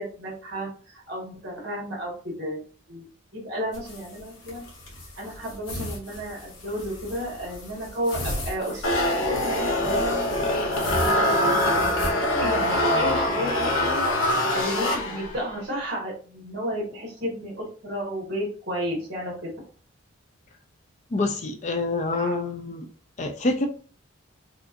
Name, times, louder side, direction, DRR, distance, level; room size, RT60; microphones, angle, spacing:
voice 1, 0.0-2.6 2.9-3.1 3.3-4.6 5.2-11.5 12.0-14.1 14.5-19.5 22.1-22.4, equal, 50° right, -2 dB, 1.8 m, -32 dB
sound 1, 3.7-12.1, left 1 dB, 60° left, 1.4 m, -37 dB
sound 2, 8.8-15.5, left 1 dB, 75° left, 1.0 m, -23 dB
voice 2, 21.1-22.8 23.2-23.7, left 2 dB, 35° left, 6 dB, 0.4 m, -26 dB
4.9 x 2.6 x 2.6 m, 0.40 s
head